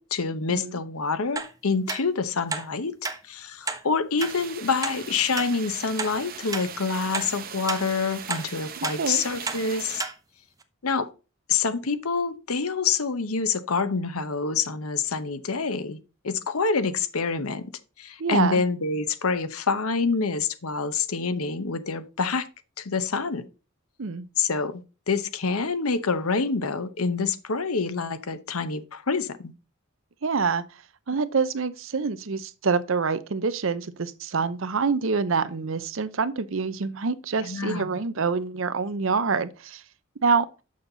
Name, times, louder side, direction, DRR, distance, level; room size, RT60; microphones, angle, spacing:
voice 1, 0.0-3.0 3.2-10.0 10.8-11.1 11.5-16.0 16.2-17.7 18.0-22.5 22.8-23.4 24.4-29.5 37.4-38.0, left 4 dB, 90° left, 0.9 m, -27 dB
sound 1, 1.4-1.5 1.9-2.0 2.5-2.7 3.0-3.2 3.7-3.8 4.2-4.3 4.8-5.0 5.4-5.5 6.0-6.1 6.5-6.7 7.1-7.3 7.7-7.8 8.3-8.5 8.8-9.0 9.5-9.6 10.0-10.1 10.6-10.7, right 4 dB, 15° right, 0.6 m, -30 dB
sound 2, 4.2-10.0, right 7 dB, 40° right, 1.0 m, -39 dB
voice 2, 18.2-18.6 24.0-24.2 30.2-30.6 31.1-39.8 40.2-40.5, right 5 dB, 65° right, 0.7 m, -26 dB
7.2 x 6.5 x 3.9 m
head